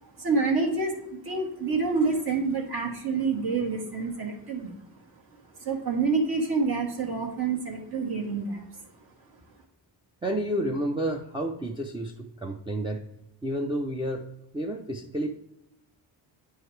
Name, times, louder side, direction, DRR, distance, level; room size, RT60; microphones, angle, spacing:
voice 1, 0.0-4.8 5.3-8.8, right 4 dB, 55° right, 0 dB, 1.3 m, -28 dB
voice 2, 10.2-12.1 12.4-13.0 13.4-14.2 14.5-15.4, right 1 dB, 10° right, -1 dB, 0.4 m, -30 dB
9.3 x 4.7 x 3.2 m, 0.83 s
cardioid pair, 135°, 45 cm